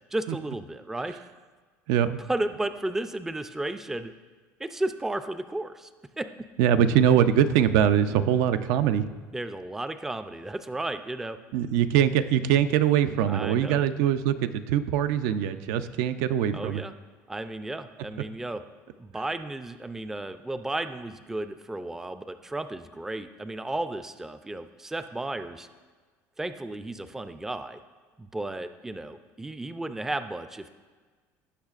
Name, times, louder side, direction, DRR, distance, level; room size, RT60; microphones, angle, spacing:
voice 1, 0.1-1.2 2.3-4.1 4.6-5.9 6.2-6.3 9.3-11.4 13.3-13.8 16.5-16.9 17.3-18.6 19.0-25.7 26.4-27.8 28.2-30.7, right 2 dB, 5° right, 10 dB, 0.3 m, -33 dB
voice 2, 1.9-2.2 6.6-9.1 11.5-16.8, right 9 dB, 80° right, 12 dB, 0.5 m, -23 dB
16.5 x 5.7 x 2.4 m, 1.4 s
cardioid pair, 145°, 6 cm